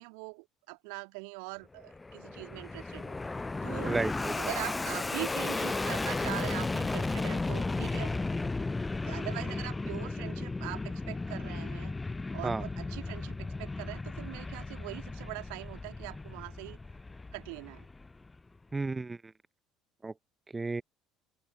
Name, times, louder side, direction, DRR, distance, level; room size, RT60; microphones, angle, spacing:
voice 1, 0.0-3.2 3.6-4.0 4.3-8.3 9.0-12.0 12.3-16.8 17.3-17.9, right 40 dB or more, 60° right, 2.3 m, -42 dB
Fixed-wing aircraft airplane, 1.8-18.4, left 3 dB, 15° left, 0.4 m, -35 dB
voice 2, 3.9-4.5 12.4-12.6 18.7-19.3 20.0-20.1 20.5-20.8, right 3 dB, 15° right, 0.8 m, -33 dB
open air
figure-of-eight pair, 60°, 0 cm